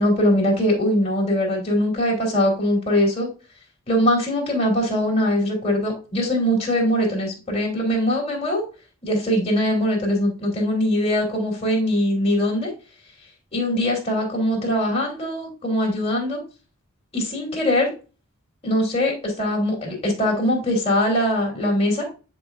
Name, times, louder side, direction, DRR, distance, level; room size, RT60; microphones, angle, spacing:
voice 1, 0.0-3.3 3.9-8.6 9.0-12.7 13.5-16.4 17.1-17.9 18.6-22.0, left 1 dB, 30° left, -2 dB, 3.1 m, -22 dB
10.0 x 5.1 x 2.4 m, 0.33 s
head